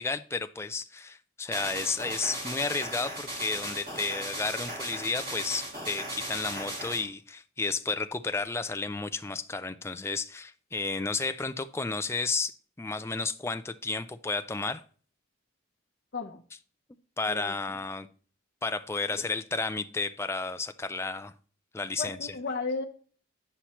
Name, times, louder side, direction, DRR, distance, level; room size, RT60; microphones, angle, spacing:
voice 1, 0.0-14.8 17.2-18.1 18.6-21.3 21.7-22.3, left 4 dB, 15° left, 10 dB, 0.3 m, -32 dB
sound 1, 1.5-7.0, right 1 dB, 45° right, 3.7 m, -37 dB
voice 2, 22.0-22.8, left 4 dB, 55° left, -1 dB, 0.9 m, -34 dB
9.9 x 5.7 x 3.0 m, 0.43 s
head